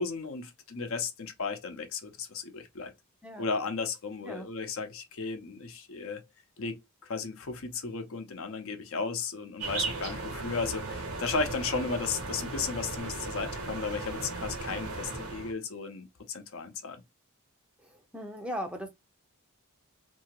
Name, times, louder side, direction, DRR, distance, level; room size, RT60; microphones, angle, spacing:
voice 1, 0.0-2.9 3.4-6.2 6.6-17.0, left 4 dB, 65° left, 0.7 m, -35 dB
sound 1, 9.6-15.5, right 3 dB, 80° right, 1.2 m, -36 dB
voice 2, 17.8-18.9, equal, 5° right, 0.5 m, -38 dB
2.8 x 2.7 x 2.8 m
head